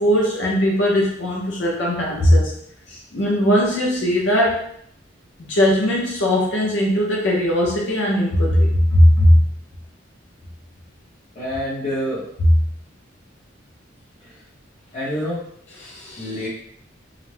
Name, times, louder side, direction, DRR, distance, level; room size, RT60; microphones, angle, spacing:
voice 1, 0.0-2.5 2.9-4.6 5.4-9.4 12.4-12.5 15.8-16.5, equal, 80° left, -2 dB, 0.6 m, -18 dB
voice 2, 11.3-12.2 14.9-15.4 16.2-16.5, equal, 40° left, -11 dB, 0.8 m, -26 dB
2.4 x 2.1 x 3.1 m, 0.67 s
head